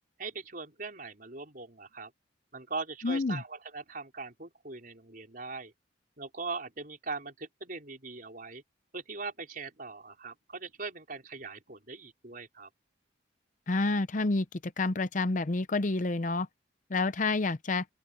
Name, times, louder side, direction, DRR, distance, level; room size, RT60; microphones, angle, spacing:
voice 1, 0.2-2.1 2.5-5.7 6.2-8.6 8.9-12.7, right 4 dB, 45° right, 4.5 m, -41 dB
voice 2, 3.0-3.4 13.7-16.5 16.9-17.8, left 3 dB, 40° left, 0.6 m, -29 dB
open air
head